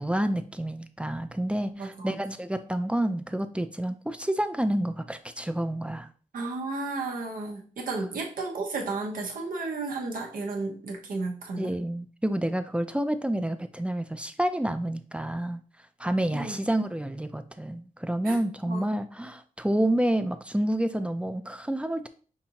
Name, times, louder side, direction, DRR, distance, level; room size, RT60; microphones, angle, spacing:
voice 1, 0.0-6.1 11.6-15.6 16.0-22.1, right 1 dB, 10° right, 9 dB, 0.4 m, -29 dB
voice 2, 1.7-2.2 6.3-11.7 16.3-16.6 18.2-18.4 18.7-18.8, right 3 dB, 90° right, 1 dB, 1.0 m, -33 dB
5.8 x 2.7 x 2.8 m, 0.40 s
cardioid pair, 70°, 14 cm